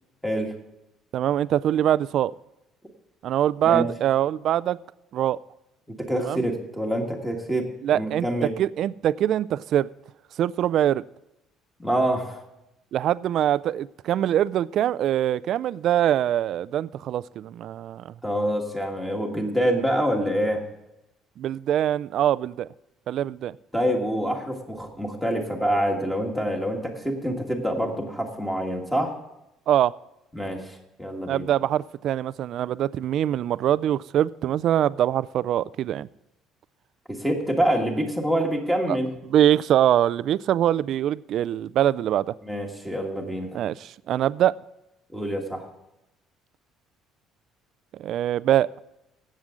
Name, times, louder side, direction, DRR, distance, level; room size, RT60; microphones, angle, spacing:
voice 1, 0.2-0.5 3.6-3.9 5.9-8.5 11.8-12.4 18.2-20.6 23.7-29.1 30.3-31.5 37.1-39.1 42.4-43.6 45.1-45.7, equal, 5° left, 2 dB, 1.6 m, -26 dB
voice 2, 1.1-2.3 3.2-4.8 5.1-5.4 6.2-6.4 7.8-8.3 8.6-9.9 10.4-11.0 12.9-18.0 21.4-22.7 23.1-23.5 29.7-29.9 31.3-36.1 38.9-39.0 39.3-42.3 43.5-44.5 48.0-48.7, right 11 dB, 45° right, 19 dB, 0.3 m, -23 dB
17.0 x 7.5 x 3.7 m, 0.90 s
cardioid pair, 180°, 0 cm